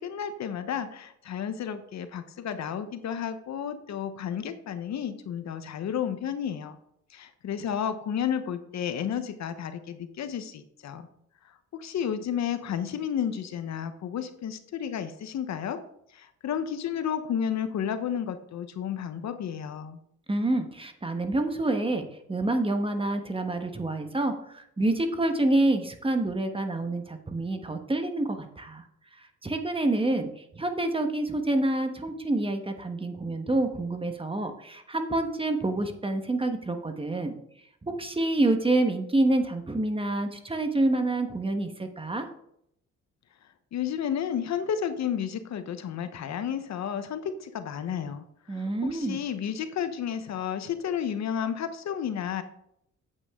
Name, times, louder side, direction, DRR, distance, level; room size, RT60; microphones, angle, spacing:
voice 1, 0.0-6.8 7.1-11.1 11.4-15.8 16.1-20.0 43.7-48.2 48.5-52.4, left 8 dB, 65° left, 10 dB, 1.0 m, -32 dB
voice 2, 20.3-28.8 29.4-37.3 37.8-42.3 48.5-49.2, right 2 dB, 20° right, 6 dB, 1.3 m, -27 dB
8.8 x 8.2 x 3.7 m, 0.74 s
cardioid pair, 90°, 30 cm